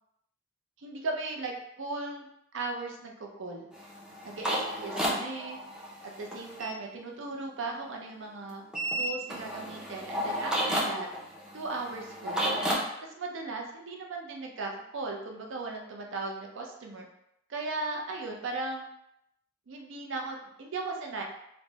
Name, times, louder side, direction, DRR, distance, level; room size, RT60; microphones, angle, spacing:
voice 1, 0.8-2.3 2.5-3.7 4.2-5.6 6.0-8.6 9.0-11.1 11.5-12.7 13.1-17.1 17.5-18.8 19.7-21.2, right 3 dB, 65° right, 1 dB, 0.5 m, -37 dB
sound 1, 3.7-6.7 8.7-12.8, equal, 5° right, 0.4 m, -32 dB
3.2 x 2.0 x 2.7 m, 0.80 s
head